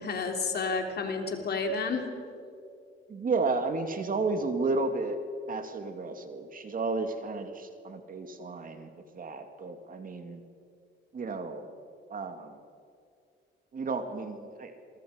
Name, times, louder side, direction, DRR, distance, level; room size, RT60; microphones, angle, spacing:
voice 1, 0.0-2.1, left 4 dB, 55° left, 4 dB, 3.4 m, -30 dB
voice 2, 3.1-5.2 5.5-10.4 11.1-11.7 12.1-12.6 13.7-14.8, right 3 dB, 45° right, 7 dB, 2.3 m, -32 dB
27.5 x 23.0 x 5.1 m, 2.4 s
cardioid pair, 90°, 20 cm